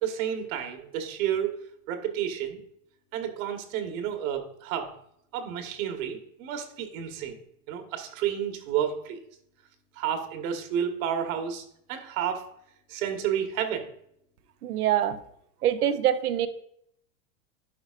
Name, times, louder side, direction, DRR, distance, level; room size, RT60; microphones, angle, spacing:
voice 1, 0.0-1.6 1.9-2.6 3.1-4.9 5.3-7.4 7.7-9.2 10.0-12.5 12.9-13.9, right 9 dB, 65° right, 5 dB, 1.5 m, -31 dB
voice 2, 14.6-15.2 15.6-16.5, right 10 dB, 90° right, 12 dB, 0.8 m, -24 dB
11.0 x 4.7 x 2.5 m, 0.71 s
hypercardioid pair, 120°, 44 cm